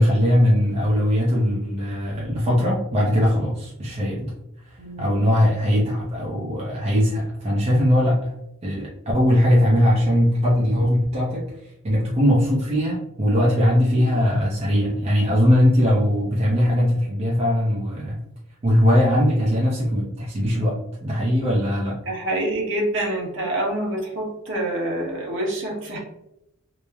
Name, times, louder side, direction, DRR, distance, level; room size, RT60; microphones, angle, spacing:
voice 1, 0.0-4.3 5.0-8.3 8.6-8.9 9.1-11.5 11.8-18.2 18.6-20.8 21.0-22.0, equal, 30° right, -5 dB, 0.5 m, -20 dB
voice 2, 4.8-5.1 22.1-26.0, right 1 dB, 60° right, -2 dB, 0.9 m, -26 dB
3.0 x 2.0 x 2.3 m, 0.82 s
head